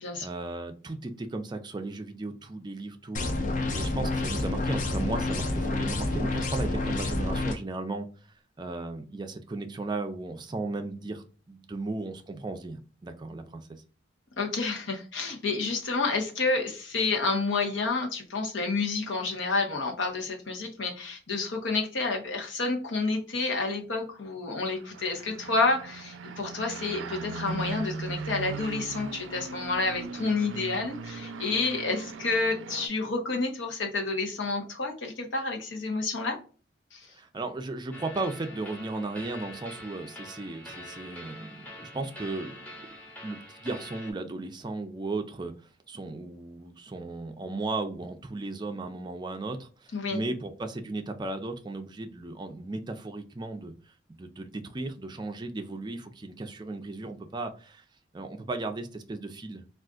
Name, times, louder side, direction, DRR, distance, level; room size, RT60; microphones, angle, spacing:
voice 1, 0.2-3.3 3.7-8.1 8.6-13.7 37.1-42.8 43.2-45.5 45.9-53.7 54.1-57.8 58.1-59.6, right 2 dB, 25° right, 6 dB, 0.4 m, -35 dB
sound 1, 3.1-7.5, left 2 dB, 40° left, 0.5 m, -29 dB
voice 2, 14.4-36.4 36.9-37.1 49.9-50.2, left 3 dB, 80° left, 2 dB, 0.9 m, -29 dB
sound 2, 24.7-32.9, right 4 dB, 90° right, 0.4 m, -39 dB
sound 3, 37.9-44.1, left 1 dB, 10° left, 0.8 m, -45 dB
3.7 x 2.4 x 2.3 m, 0.37 s
head